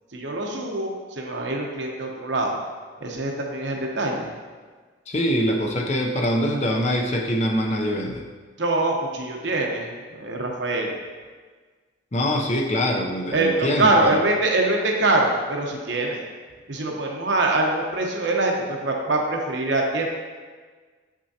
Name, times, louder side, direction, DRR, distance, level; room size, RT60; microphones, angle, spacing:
voice 1, 0.1-2.6 3.0-4.3 8.6-10.9 12.3-12.4 13.3-16.2 16.7-20.1, right 2 dB, 65° right, 1 dB, 0.9 m, -24 dB
voice 2, 5.1-8.2 12.1-14.2, equal, 35° left, 1 dB, 0.6 m, -24 dB
7.0 x 6.1 x 2.8 m, 1.5 s
head